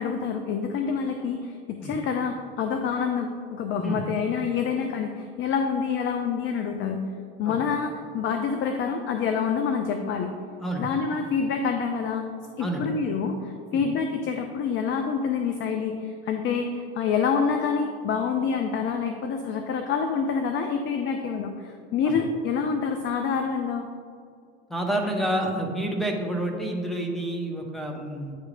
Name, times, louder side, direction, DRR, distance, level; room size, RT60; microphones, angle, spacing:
voice 1, 0.0-7.0 7.4-10.3 10.8-12.3 12.6-23.9, left 6 dB, 35° left, 5 dB, 0.5 m, -27 dB
voice 2, 24.7-28.4, right 1 dB, ahead, 1 dB, 0.9 m, -29 dB
9.3 x 3.2 x 3.7 m, 2.2 s
hypercardioid pair, 75°, 33 cm